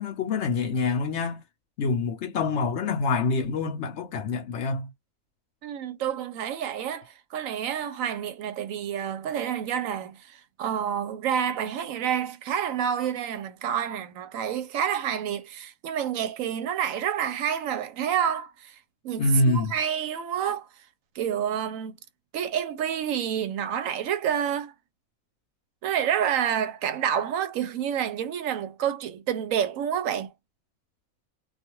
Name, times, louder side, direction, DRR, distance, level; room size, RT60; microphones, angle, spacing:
voice 1, 0.0-1.4 1.8-4.9 19.2-19.7, left 3 dB, 65° left, 0.8 m, -26 dB
voice 2, 5.6-18.8 19.0-20.7 21.2-21.9 22.3-24.7 25.8-30.3, right 9 dB, 75° right, 0.9 m, -28 dB
2.4 x 2.3 x 2.9 m
omnidirectional pair, 1.5 m